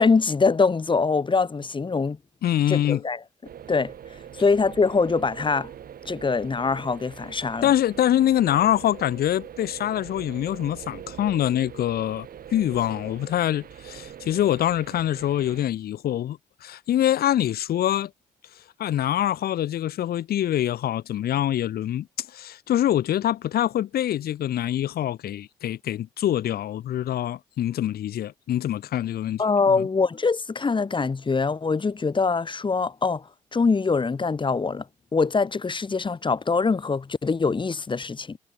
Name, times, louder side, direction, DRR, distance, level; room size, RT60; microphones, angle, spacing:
voice 1, 0.0-2.2 2.7-3.2 3.7-3.9 4.4-5.7 6.0-7.7 29.4-34.8 35.1-38.4, left 4 dB, 25° left, 1.1 m, -23 dB
voice 2, 2.4-3.0 7.6-18.1 18.8-29.4 29.7-29.9, left 12 dB, 60° left, 1.3 m, -25 dB
sound 1, 3.4-15.7, right 9 dB, 55° right, 2.4 m, -42 dB
hypercardioid pair, 45°, 18 cm